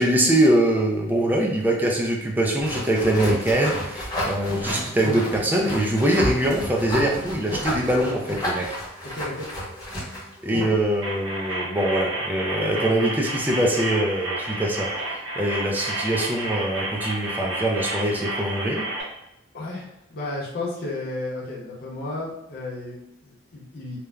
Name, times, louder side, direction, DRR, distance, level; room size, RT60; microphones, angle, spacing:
voice 1, 0.0-8.7 10.4-18.8, right 1 dB, 10° right, 0 dB, 0.3 m, -23 dB
sound 1, 2.6-10.8, equal, 20° left, 0.8 m, -31 dB
voice 2, 9.1-9.5 12.6-12.9 19.5-24.0, left 2 dB, 50° left, -4 dB, 0.7 m, -33 dB
sound 2, 11.0-19.0, right 2 dB, 80° right, 1.2 m, -31 dB
3.1 x 2.1 x 2.3 m, 0.89 s
head